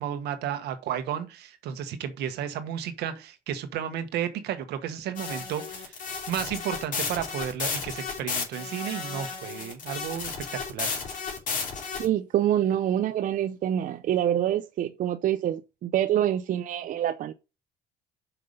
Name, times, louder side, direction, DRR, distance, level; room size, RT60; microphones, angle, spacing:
voice 1, 0.0-6.0 6.3-11.0, right 9 dB, 80° right, 1.4 m, -33 dB
sound 1, 5.2-12.1, left 5 dB, 50° left, 3.0 m, -33 dB
voice 2, 12.0-17.3, right 11 dB, 50° right, 0.5 m, -26 dB
5.8 x 5.3 x 6.6 m
cardioid pair, 110°, 17 cm